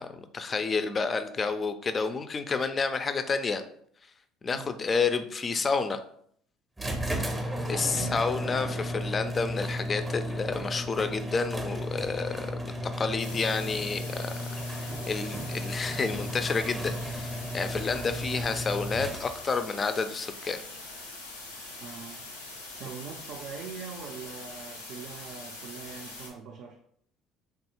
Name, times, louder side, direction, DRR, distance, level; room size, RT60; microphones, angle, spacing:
voice 1, 0.0-3.6 4.4-6.0 7.3-14.4 14.8-20.6, left 4 dB, 35° left, 10 dB, 0.3 m, -30 dB
sound 1, 6.8-19.6, equal, 15° right, 0.6 m, -34 dB
voice 2, 7.6-8.2 21.8-22.2 22.7-26.8, right 6 dB, 60° right, 0 dB, 0.4 m, -42 dB
sound 2, 13.2-26.3, left 2 dB, 85° left, 0.6 m, -43 dB
3.4 x 2.3 x 2.9 m, 0.64 s
hypercardioid pair, 60°, 0 cm